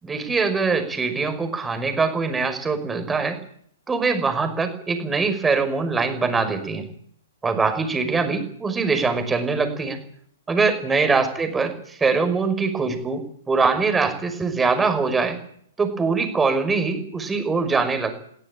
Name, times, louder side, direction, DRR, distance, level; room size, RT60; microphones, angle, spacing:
voice 1, 0.0-3.4 3.9-6.8 7.4-10.0 10.5-11.7 12.0-13.2 13.5-15.4 15.8-18.1, right 4 dB, 10° right, 8 dB, 5.7 m, -22 dB
22.0 x 17.0 x 8.7 m, 0.65 s
hypercardioid pair, 115°, 0 cm